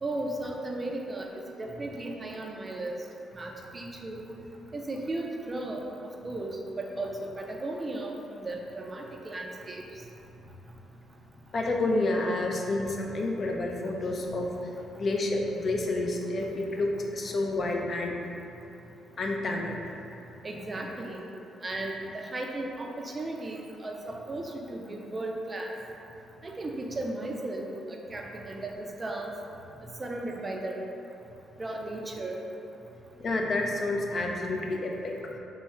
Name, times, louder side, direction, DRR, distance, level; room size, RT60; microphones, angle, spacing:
voice 1, 0.0-3.0 3.3-4.2 4.7-5.9 6.2-9.8 20.4-21.3 21.6-25.7 26.4-29.3 29.8-30.9 31.6-32.4, right 2 dB, 30° right, 1 dB, 0.3 m, -35 dB
voice 2, 11.5-14.5 15.0-18.3 19.2-19.8 33.2-35.4, left 2 dB, 45° left, 1 dB, 0.4 m, -29 dB
3.0 x 2.3 x 4.2 m, 2.8 s
cardioid pair, 90°, 0 cm